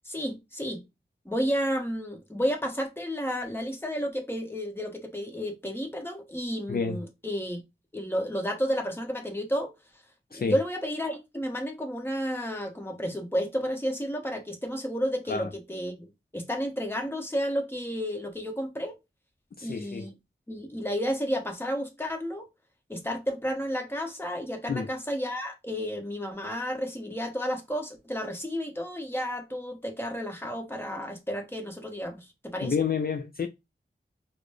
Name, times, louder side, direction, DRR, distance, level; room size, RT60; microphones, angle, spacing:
voice 1, 0.0-0.8 1.2-7.6 7.9-9.7 10.3-18.9 19.6-20.1 20.5-22.5 22.9-32.7, equal, 10° left, 1.1 m, -31 dB
voice 2, 19.6-20.1 24.7-24.9 32.6-33.5, left 5 dB, 50° left, 0.4 m, -29 dB
4.0 x 2.1 x 3.2 m
wide cardioid pair, 45°, 19 cm